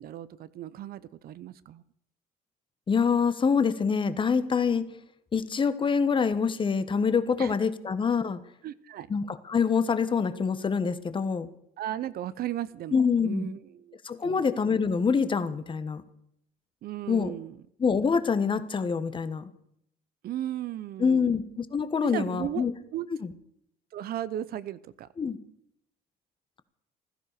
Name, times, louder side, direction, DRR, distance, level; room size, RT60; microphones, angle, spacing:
voice 1, 0.0-1.8 7.4-7.5 8.6-9.1 11.8-14.0 14.2-14.5 16.8-17.6 20.2-21.3 22.0-22.6 22.9-23.1 23.9-25.1, right 12 dB, 65° right, 16 dB, 0.8 m, -36 dB
voice 2, 2.9-4.9 5.3-8.4 9.1-11.5 12.9-13.5 14.0-16.0 17.1-17.3 17.8-19.5 21.0-22.7 23.2-23.3 25.2-25.4, left 5 dB, 30° left, 13 dB, 1.3 m, -25 dB
15.5 x 13.0 x 6.7 m, 0.74 s
cardioid pair, 110°, 17 cm